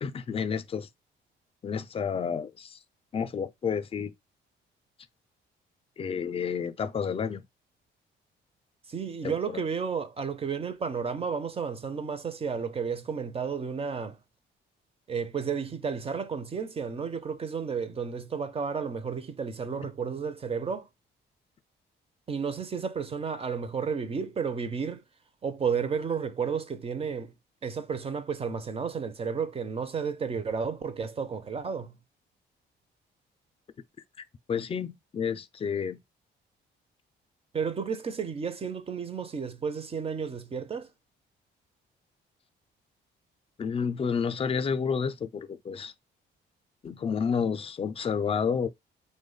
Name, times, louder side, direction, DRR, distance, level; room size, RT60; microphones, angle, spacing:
voice 1, 0.0-0.9 1.6-2.8 3.1-4.1 6.0-7.4 9.2-9.6 34.5-36.0 43.6-45.9 46.8-48.7, left 6 dB, 30° left, 0.4 m, -30 dB
voice 2, 8.9-14.2 15.1-20.9 22.3-25.0 25.4-27.3 27.6-32.0 37.5-40.9, right 6 dB, 30° right, 0.5 m, -32 dB
3.0 x 2.2 x 3.8 m
cardioid pair, 90°, 20 cm